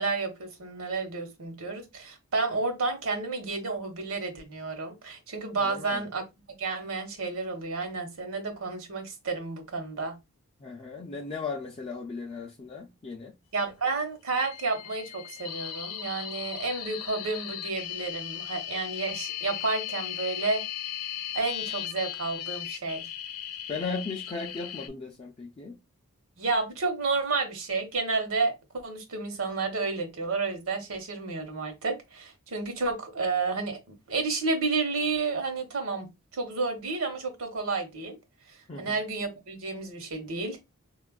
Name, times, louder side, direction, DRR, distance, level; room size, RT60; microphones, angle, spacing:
voice 1, 0.0-6.2 6.6-10.2 13.5-20.6 21.3-23.1 26.4-33.8 34.1-36.1 36.3-38.2 38.8-40.6, right 3 dB, 70° right, 0.9 m, -31 dB
voice 2, 5.6-6.1 10.6-13.4 23.7-25.8 38.7-39.0, left 4 dB, 25° left, 0.3 m, -37 dB
sound 1, 14.4-24.9, left 11 dB, 90° left, 0.5 m, -37 dB
4.1 x 2.3 x 2.3 m
head